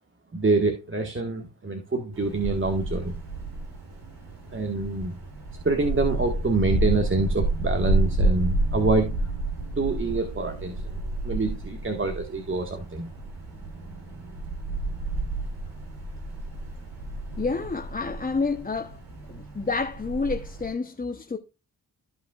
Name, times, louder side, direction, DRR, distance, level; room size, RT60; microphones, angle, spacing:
voice 1, 0.3-3.1 4.5-5.1 5.6-9.2 9.8-10.8 11.2-13.1, right 3 dB, 35° right, 1.6 m, -26 dB
Wind, 2.1-20.7, right 2 dB, 75° right, 4.5 m, -30 dB
voice 2, 17.4-19.0 19.3-21.4, left 4 dB, 25° left, 0.9 m, -29 dB
14.5 x 5.1 x 2.4 m
cardioid pair, 70°, 37 cm